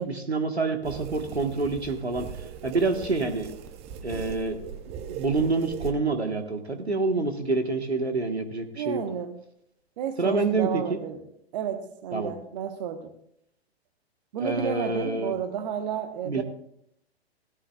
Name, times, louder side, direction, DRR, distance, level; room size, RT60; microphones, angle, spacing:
voice 1, 0.0-2.3 2.6-3.5 4.0-4.6 5.1-9.0 10.2-11.0 12.1-12.3 14.4-15.3 16.2-16.4, right 3 dB, 85° right, 6 dB, 1.5 m, -27 dB
sound 1, 0.8-5.9, right 9 dB, 20° right, 0.7 m, -39 dB
voice 2, 8.7-9.4 10.0-11.2 11.5-13.1 14.3-16.4, right 8 dB, 40° right, 8 dB, 1.2 m, -32 dB
16.5 x 13.5 x 2.4 m, 0.71 s
figure-of-eight pair, 115°, 32 cm